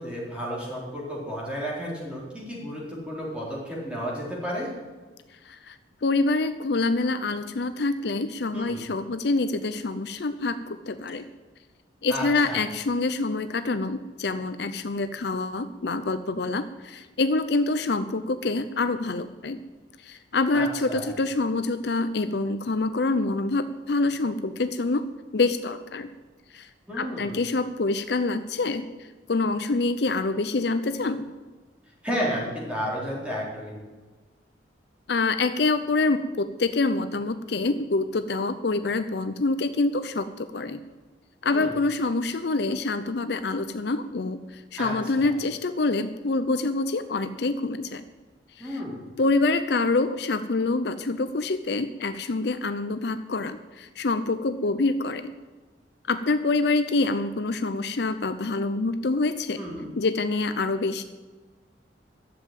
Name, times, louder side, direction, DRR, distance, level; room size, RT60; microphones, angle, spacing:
voice 1, 0.0-4.7 8.5-8.8 12.1-12.6 20.5-21.1 26.9-27.4 32.0-33.8 41.5-41.8 44.8-45.3 48.6-49.1 59.6-59.9, equal, 5° right, -5 dB, 4.1 m, -32 dB
voice 2, 5.5-11.2 12.0-19.6 20.0-25.1 25.3-26.1 26.5-26.7 26.9-31.3 35.1-40.8 41.4-48.0 48.6-48.8 49.2-55.2 56.1-59.6 60.0-61.0, left 3 dB, 60° left, 10 dB, 0.6 m, -26 dB
12.5 x 7.4 x 9.1 m, 1.3 s
head